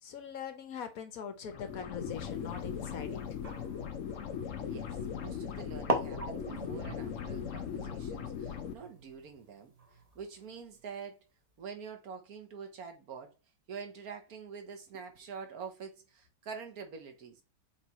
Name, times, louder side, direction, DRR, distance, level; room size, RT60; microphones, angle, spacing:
voice 1, 0.0-3.4, left 7 dB, 60° left, 1.0 m, -42 dB
sound 1, 1.5-8.7, left 7 dB, 85° left, 0.6 m, -39 dB
sound 2, 2.1-5.0 5.6-5.7 5.9-10.5, right 1 dB, 30° right, 0.7 m, -41 dB
voice 2, 4.7-11.2 11.6-13.3 13.7-17.4, right 6 dB, 55° right, 1.4 m, -46 dB
7.2 x 3.2 x 4.2 m
omnidirectional pair, 2.2 m